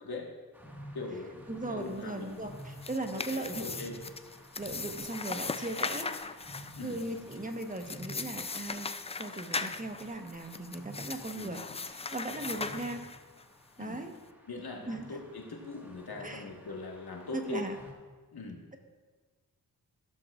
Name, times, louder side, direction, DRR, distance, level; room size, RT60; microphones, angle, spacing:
sound 1, 0.5-17.9, equal, 5° right, 1.7 m, -51 dB
voice 1, 0.9-2.4 3.1-4.0 6.7-7.0 11.3-11.5 13.8-14.0 14.5-17.6 18.3-18.6, left 3 dB, 70° left, 0 dB, 1.7 m, -41 dB
voice 2, 1.5-3.7 4.6-6.1 6.8-8.9 9.2-13.1 13.8-14.1 14.9-15.1 16.2-16.5 17.3-17.8, right 2 dB, 20° right, 4 dB, 1.1 m, -38 dB
sound 2, 2.5-13.4, left 4 dB, 15° left, 0.3 m, -39 dB
14.5 x 7.1 x 2.5 m, 1.4 s
cardioid pair, 50°, 39 cm